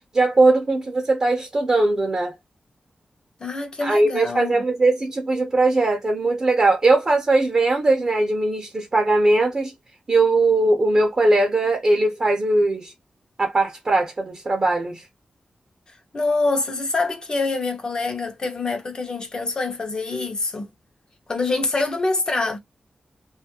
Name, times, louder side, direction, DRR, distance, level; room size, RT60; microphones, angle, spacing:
voice 1, 0.1-2.3 3.8-9.7 10.1-12.9 13.4-15.0, right 2 dB, 30° right, 0.6 m, -20 dB
voice 2, 3.4-4.5 16.1-20.7 21.3-22.6, left 3 dB, 35° left, 0.8 m, -25 dB
2.6 x 2.4 x 2.7 m
wide cardioid pair, 165°, 2 cm